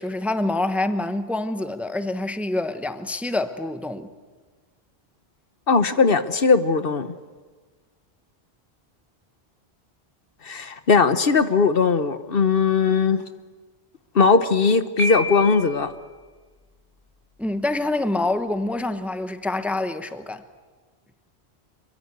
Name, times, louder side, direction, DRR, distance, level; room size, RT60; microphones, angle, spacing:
voice 1, 0.0-4.1 17.4-20.4, left 2 dB, ahead, 1.0 m, -26 dB
voice 2, 5.7-7.1 10.4-13.2 14.1-15.9, left 4 dB, 60° left, 1.2 m, -19 dB
Piano, 15.0-15.9, left 1 dB, 90° left, 6.6 m, -28 dB
25.5 x 23.0 x 8.0 m
omnidirectional pair, 1.1 m